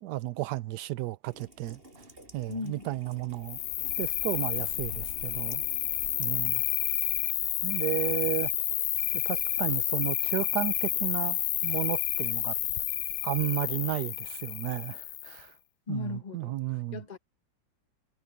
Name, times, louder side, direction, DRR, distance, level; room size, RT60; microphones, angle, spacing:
voice 1, 0.0-1.8 2.3-3.6 4.0-5.6 6.2-6.6 7.6-8.5 9.2-12.6 13.2-15.5 15.9-17.0, right 16 dB, 70° right, 1.1 m, -33 dB
Rain, 1.2-6.8, right 1 dB, 25° right, 6.7 m, -52 dB
voice 2, 2.5-2.9 15.9-17.2, left 4 dB, 25° left, 1.2 m, -38 dB
Cricket, 3.4-15.4, left 14 dB, 70° left, 1.1 m, -30 dB
omnidirectional pair, 2.2 m